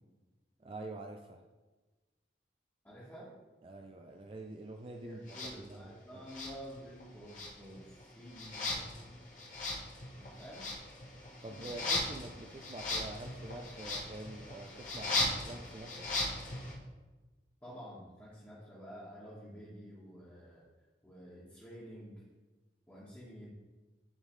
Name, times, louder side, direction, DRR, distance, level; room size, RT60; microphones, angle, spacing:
voice 1, 0.6-1.4 3.6-6.3 11.4-16.1, right 2 dB, 30° right, 3 dB, 0.3 m, -46 dB
voice 2, 2.8-3.3 5.0-9.7 10.2-10.7 17.6-20.6 21.0-22.2 22.9-23.5, equal, 10° left, -10 dB, 1.4 m, -50 dB
sound 1, 5.3-5.5 6.3-7.0 7.3-16.7, left 2 dB, 45° left, 1.1 m, -38 dB
10.0 x 3.6 x 3.2 m, 1.2 s
head